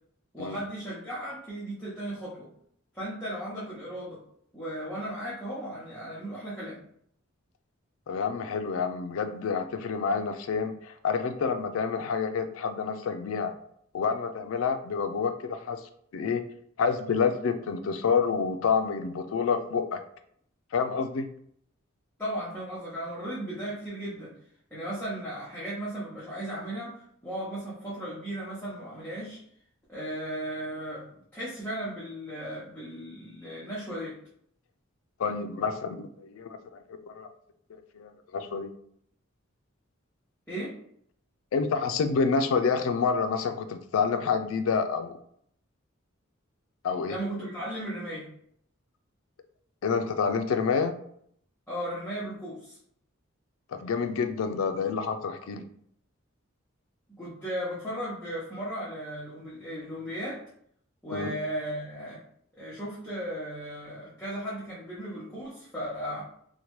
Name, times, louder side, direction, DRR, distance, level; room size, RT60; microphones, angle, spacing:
voice 1, 0.3-2.5 2.9-4.2 4.5-6.8 22.2-24.3 24.7-29.4 29.9-31.1 31.3-34.2 40.5-40.7 47.1-48.3 51.7-52.8 57.2-60.4 61.0-62.2 62.6-66.2, right 1 dB, 10° left, -10 dB, 0.7 m, -36 dB
voice 2, 8.1-13.5 13.9-15.8 16.1-16.4 16.8-20.0 20.7-21.3 35.2-37.3 37.7-38.7 41.5-45.2 46.8-47.2 49.8-50.9 53.7-55.6 61.1-61.3, left 5 dB, 75° left, 8 dB, 0.3 m, -28 dB
2.9 x 2.1 x 3.0 m, 0.67 s
head